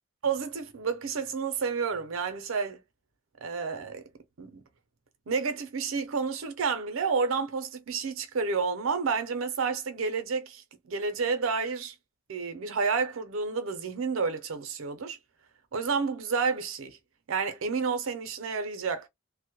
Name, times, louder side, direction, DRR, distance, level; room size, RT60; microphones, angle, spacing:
voice 1, 0.2-2.8 3.4-4.0 4.4-4.6 5.3-11.9 12.3-15.2 15.7-17.0 17.3-19.1, right 5 dB, 85° right, 0.6 m, -30 dB
2.1 x 2.1 x 2.9 m
head